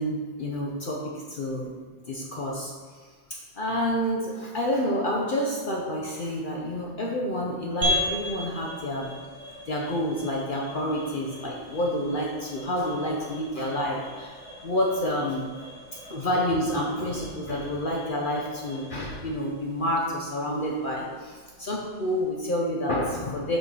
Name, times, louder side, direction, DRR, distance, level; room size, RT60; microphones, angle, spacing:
voice 1, 0.0-1.7 2.1-9.1 9.7-15.5 16.1-23.6, equal, 75° left, -1 dB, 0.4 m, -29 dB
sound 1, 7.8-22.4, left 1 dB, 20° right, 1.1 m, -37 dB
6.1 x 5.0 x 6.1 m, 1.5 s
omnidirectional pair, 2.1 m